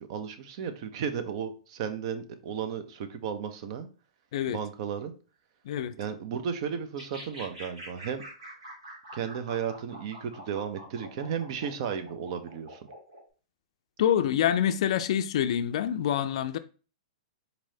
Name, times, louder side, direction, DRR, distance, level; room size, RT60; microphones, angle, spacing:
voice 1, 0.1-3.9 4.5-5.1 6.0-8.2 9.1-12.8, right 7 dB, 55° right, 0.6 m, -34 dB
sound 1, 7.0-13.2, right 1 dB, 90° right, 1.9 m, -46 dB
voice 2, 14.0-16.6, left 10 dB, 60° left, 0.4 m, -26 dB
4.0 x 3.0 x 2.7 m
hypercardioid pair, 130°, 4 cm